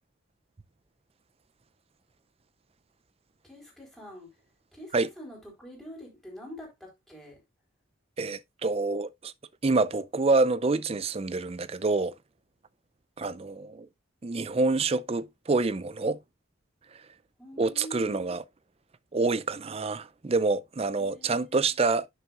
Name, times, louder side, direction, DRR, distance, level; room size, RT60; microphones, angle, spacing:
voice 1, 3.4-4.3 4.7-7.4 17.4-18.4 21.0-21.7, equal, ahead, 4.0 m, -45 dB
voice 2, 8.2-9.3 9.6-12.1 13.2-13.9 14.2-16.2 16.9-17.1 17.6-18.4 19.1-22.1, right 3 dB, 30° right, 0.4 m, -27 dB
11.0 x 6.7 x 2.5 m
head